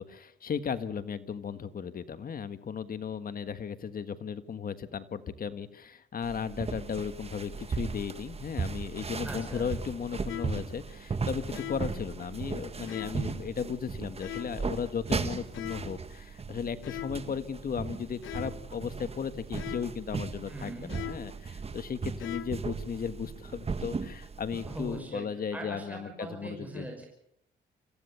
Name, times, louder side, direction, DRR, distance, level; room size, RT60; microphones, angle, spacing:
voice 1, 0.0-26.9, left 7 dB, 45° left, 11 dB, 1.6 m, -36 dB
sound 1, 6.2-25.0, right 4 dB, 30° right, 1.7 m, -37 dB
voice 2, 9.2-9.7 20.5-21.1 24.7-25.2 25.5-27.1, right 2 dB, 5° right, 1 dB, 5.5 m, -41 dB
sound 2, 10.3-10.7 11.5-12.0 12.9-13.3 14.2-14.7 15.5-16.0 16.8-17.4 18.2-18.7 19.6-20.0 20.9-21.4 22.2-22.7, left 11 dB, 80° left, 1.1 m, -41 dB
26.5 x 15.5 x 7.0 m, 0.74 s
cardioid pair, 90°, 20 cm